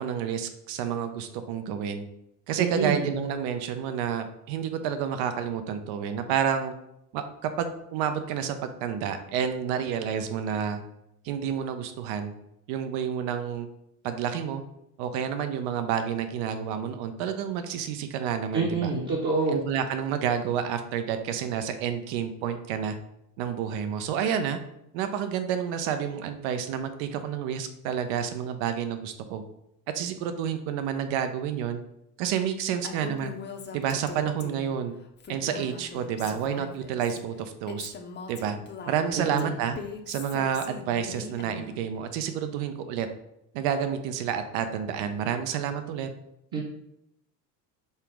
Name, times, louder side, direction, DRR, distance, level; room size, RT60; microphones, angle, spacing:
voice 1, 0.0-2.0 2.5-6.7 7.1-10.8 11.2-12.3 12.7-13.7 14.0-14.6 15.0-18.9 19.5-23.0 23.4-24.6 24.9-29.4 29.9-31.8 32.2-33.4 33.7-34.9 35.3-37.9 38.3-38.6 38.9-39.8 40.1-43.1 43.5-46.1, right 8 dB, 70° right, 8 dB, 0.7 m, -29 dB
voice 2, 2.6-3.1 18.5-19.6 39.2-39.5 46.5-46.6, right 4 dB, 40° right, -2 dB, 1.0 m, -27 dB
Female speech woman speaking, 32.8-34.8 35.2-37.2 37.7-41.8, left 5 dB, 25° left, 0.6 m, -41 dB
5.6 x 2.0 x 4.5 m, 0.80 s
supercardioid pair, 85°, 48 cm